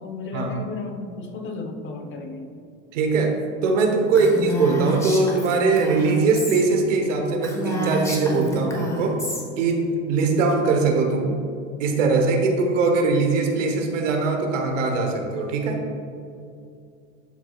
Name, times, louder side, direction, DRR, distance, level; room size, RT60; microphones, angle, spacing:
voice 1, 0.0-2.5 4.0-4.4, left 3 dB, 30° left, 5 dB, 0.9 m, -34 dB
voice 2, 2.9-3.3 3.6-9.2 9.6-11.3 11.8-15.8, right 3 dB, 80° right, 3 dB, 1.2 m, -21 dB
Female speech woman speaking, 4.1-6.6 7.0-7.1 7.4-9.4, equal, 10° left, 1.2 m, -29 dB
12.5 x 4.5 x 2.4 m, 2.4 s
hypercardioid pair, 105°, 37 cm